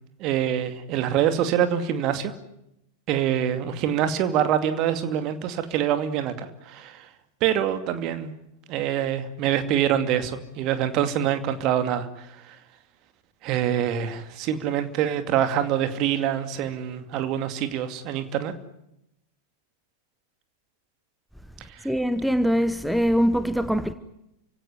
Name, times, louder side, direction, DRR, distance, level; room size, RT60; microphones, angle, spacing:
voice 1, 0.2-2.3 3.1-7.1 7.4-8.3 8.7-12.6 13.4-18.5 21.7-21.9, right 10 dB, 40° right, 2.5 m, -25 dB
voice 2, 21.8-23.9, equal, ahead, 1.1 m, -22 dB
29.5 x 17.0 x 10.0 m
figure-of-eight pair, 90°, 0 cm